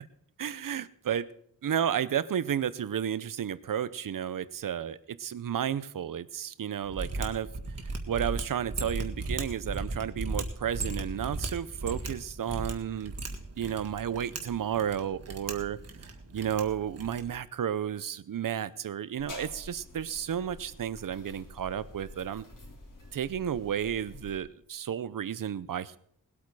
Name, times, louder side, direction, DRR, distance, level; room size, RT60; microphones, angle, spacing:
voice 1, 0.4-1.3 1.6-7.5 8.1-13.1 13.6-15.8 16.3-22.4 23.1-26.0, right 9 dB, 60° right, 17 dB, 0.6 m, -32 dB
Mechanisms, 6.9-17.4, right 2 dB, 40° right, 1.7 m, -37 dB
sound 1, 19.2-24.4, left 2 dB, 55° left, 3.2 m, -48 dB
20.0 x 8.5 x 4.7 m, 0.68 s
wide cardioid pair, 165°, 37 cm